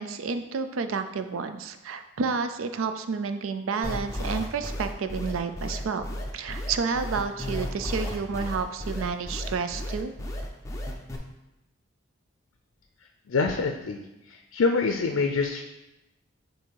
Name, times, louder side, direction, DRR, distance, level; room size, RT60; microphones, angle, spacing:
voice 1, 0.0-6.0 6.3-10.1, right 5 dB, 85° right, 9 dB, 0.4 m, -30 dB
sound 1, 3.8-11.2, left 1 dB, 15° left, 0.5 m, -33 dB
voice 2, 13.3-15.6, left 4 dB, 90° left, 5 dB, 0.4 m, -26 dB
7.5 x 2.7 x 4.6 m, 0.99 s
head